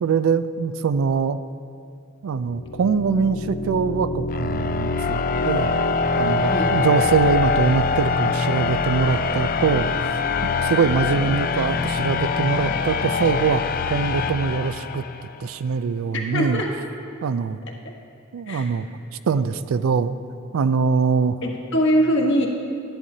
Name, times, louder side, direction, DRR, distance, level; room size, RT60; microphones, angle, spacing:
voice 1, 0.0-1.4 2.2-5.8 6.2-10.2 10.6-15.0 15.4-16.6 17.2-17.6 18.3-18.9 19.3-20.2 20.5-21.4, right 5 dB, 90° right, 13 dB, 0.4 m, -23 dB
sound 1, 2.5-15.4, left 4 dB, 45° left, 0.4 m, -24 dB
voice 2, 16.1-16.7 17.8-18.0 18.5-18.7 21.4-22.5, equal, 65° left, -1 dB, 1.3 m, -22 dB
12.5 x 10.0 x 2.8 m, 2.4 s
head